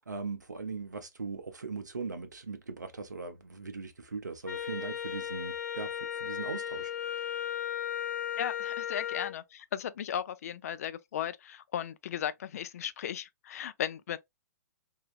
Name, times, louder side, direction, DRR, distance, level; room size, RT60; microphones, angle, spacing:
voice 1, 0.0-6.9, right 4 dB, 90° right, 0.8 m, -39 dB
Wind instrument woodwind instrument, 4.5-9.3, left 9 dB, 85° left, 0.8 m, -35 dB
voice 2, 8.4-14.2, left 9 dB, 60° left, 0.4 m, -36 dB
3.4 x 2.7 x 2.4 m
hypercardioid pair, 125°, 9 cm